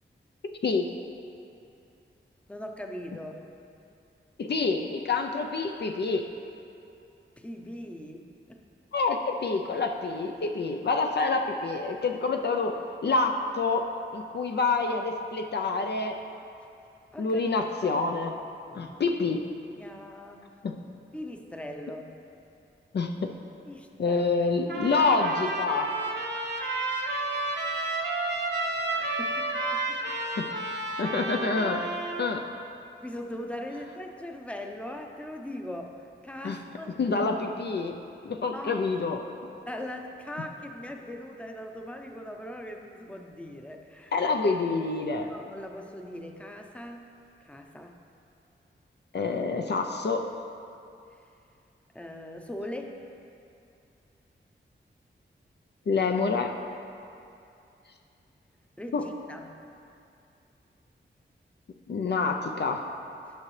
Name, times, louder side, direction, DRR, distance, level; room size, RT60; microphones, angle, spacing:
voice 1, 2.5-3.4 7.4-8.6 17.1-17.4 18.7-19.0 19.8-20.4 21.1-22.1 23.7-24.2 28.9-30.2 33.0-36.9 38.5-38.8 39.7-44.1 45.3-47.1 47.4-48.0 51.9-53.0 58.8-59.5, left 1 dB, 5° left, 3 dB, 0.7 m, -40 dB
voice 2, 4.4-6.3 8.9-16.2 17.2-18.3 18.7-19.4 20.6-20.8 22.9-23.3 24.0-25.9 30.2-30.5 30.9-31.8 32.2-32.4 36.4-36.6 36.9-39.3 44.1-45.3 49.1-50.3 55.9-56.6 58.9-59.1 61.9-62.9, left 4 dB, 60° left, 4 dB, 0.5 m, -27 dB
Trumpet, 24.7-32.3, right 2 dB, 60° right, 0.9 m, -31 dB
11.5 x 5.9 x 3.2 m, 2.6 s
cardioid pair, 60°, 20 cm